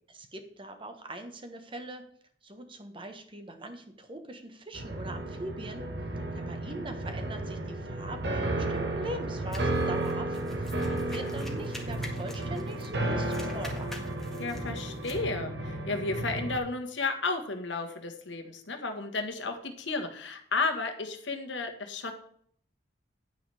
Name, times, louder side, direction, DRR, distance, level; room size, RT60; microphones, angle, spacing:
voice 1, 0.1-2.0 2.4-5.8 6.3-13.9, right 1 dB, 30° right, 7 dB, 1.3 m, -42 dB
sound 1, 4.7-16.6, right 2 dB, 65° right, 1.5 m, -33 dB
voice 2, 6.4-6.8 10.8-11.5 14.4-22.1, left 3 dB, 80° left, 5 dB, 1.6 m, -33 dB
sound 2, 9.5-13.0 13.2-15.2, left 1 dB, ahead, 1.8 m, -47 dB
9.9 x 9.7 x 3.5 m, 0.63 s
head